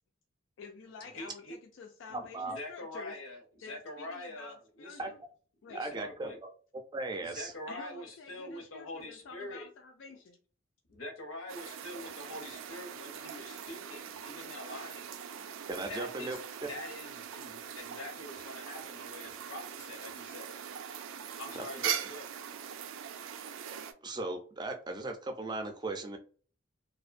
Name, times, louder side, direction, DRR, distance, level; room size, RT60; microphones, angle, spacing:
voice 1, 0.6-3.2 3.6-5.2 5.6-5.8 7.7-10.4, left 4 dB, 65° left, 4 dB, 0.3 m, -49 dB
voice 2, 1.1-1.6 2.1-5.1 5.7-6.4 7.2-9.7 10.9-15.1 15.9-20.6 21.4-22.3, left 1 dB, 85° left, 4 dB, 0.7 m, -45 dB
voice 3, 5.7-6.5 6.9-7.5 15.7-16.7 24.0-26.2, right 2 dB, 20° right, 5 dB, 0.4 m, -37 dB
sound 1, 11.5-23.9, right 8 dB, 90° right, 0.3 m, -41 dB
2.5 x 2.1 x 2.4 m, 0.40 s
head